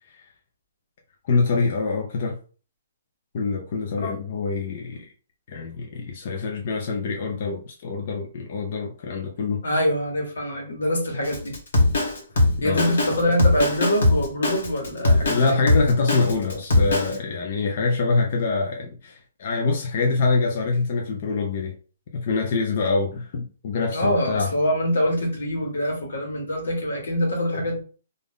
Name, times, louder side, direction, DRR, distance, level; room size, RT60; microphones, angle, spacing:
voice 1, 1.2-2.4 3.3-5.1 5.5-9.6 12.6-12.8 15.0-21.7 22.1-24.5, left 4 dB, 45° left, 0.5 m, -25 dB
voice 2, 9.6-11.5 12.6-15.6 23.9-27.8, equal, 85° left, 1.4 m, -24 dB
Drum kit, 11.2-17.2, left 2 dB, 65° left, 1.1 m, -20 dB
2.6 x 2.4 x 3.5 m
hypercardioid pair, 170°, 0 cm